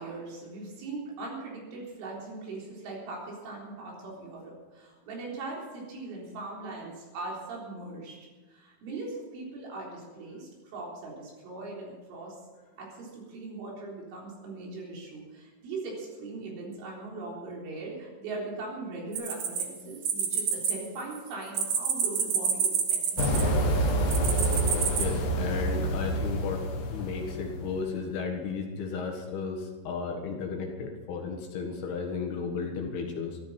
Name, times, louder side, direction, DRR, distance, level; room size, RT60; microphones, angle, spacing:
voice 1, 0.0-8.2 8.5-12.4 12.8-23.9, right 3 dB, 80° right, -3 dB, 6.3 m, -40 dB
sound 1, 19.2-20.7 21.0-23.6 24.1-25.1, right 7 dB, 60° right, 2.3 m, -28 dB
sound 2, 23.2-27.9, right 1 dB, 90° left, 1.4 m, -27 dB
voice 2, 25.0-26.6 26.9-33.4, left 5 dB, 65° left, 1 dB, 3.3 m, -34 dB
14.0 x 14.0 x 5.8 m, 1.3 s
omnidirectional pair, 5.5 m